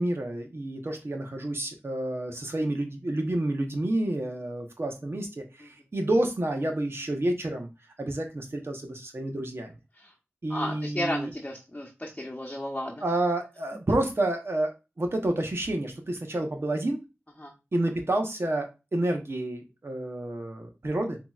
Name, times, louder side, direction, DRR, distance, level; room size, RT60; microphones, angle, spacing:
voice 1, 0.0-7.7 8.0-9.7 10.4-11.3 13.0-17.0 17.7-21.2, right 1 dB, 60° right, 3 dB, 0.9 m, -29 dB
voice 2, 10.5-13.0 17.4-17.5, left 1 dB, 25° left, -1 dB, 1.0 m, -34 dB
6.0 x 2.9 x 2.3 m, 0.26 s
wide cardioid pair, 45°, 5 cm